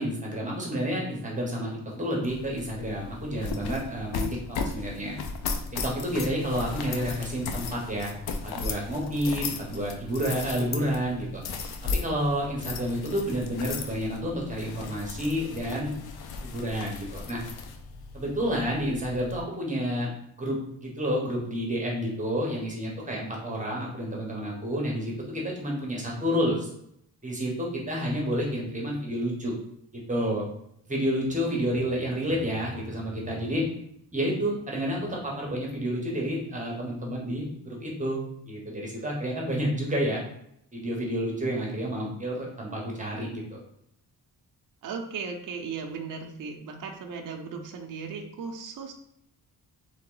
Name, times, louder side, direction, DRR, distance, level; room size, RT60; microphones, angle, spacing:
voice 1, 0.0-5.2 5.7-8.1 8.4-11.4 11.8-15.9 16.4-17.4 18.1-20.1 20.4-26.7 27.2-29.5 29.9-30.4 30.9-33.7 34.1-40.2 40.7-43.6, equal, 20° right, -2 dB, 1.1 m, -30 dB
sound 1, 2.2-19.4, left 4 dB, 80° left, 0.6 m, -36 dB
voice 2, 44.8-48.9, right 5 dB, 55° right, 2 dB, 0.7 m, -36 dB
3.7 x 3.5 x 3.8 m, 0.74 s
wide cardioid pair, 150°, 38 cm